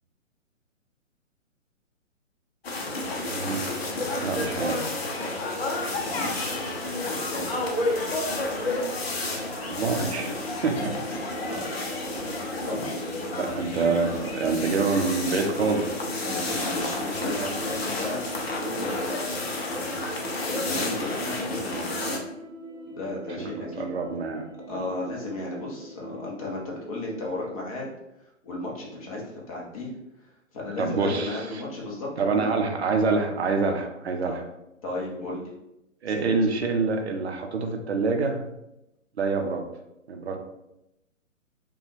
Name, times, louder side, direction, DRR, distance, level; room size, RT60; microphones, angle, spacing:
sound 1, 2.6-22.2, left 2 dB, 50° left, 0.8 m, -31 dB
voice 1, 3.3-3.8 4.2-4.8 9.7-10.3 10.6-10.9 13.4-15.9 17.2-17.5 23.6-24.4 24.7-24.8 30.8-31.4 32.2-34.4 36.0-38.4 39.2-39.6 40.1-40.4, right 4 dB, 55° right, 4 dB, 0.7 m, -26 dB
voice 2, 6.0-6.5 7.0-7.5 9.6-10.4 11.4-11.6 12.6-13.0 16.2-20.0 20.4-22.1 22.9-23.9 24.7-27.9 28.4-29.9 30.5-32.7 34.2-34.4 34.8-35.5 36.0-36.4, left 2 dB, 25° left, -3 dB, 1.0 m, -35 dB
sound 2, 10.3-26.2, right 1 dB, 10° right, 0.9 m, -41 dB
5.3 x 2.4 x 3.3 m, 0.87 s
figure-of-eight pair, 130°, 40 cm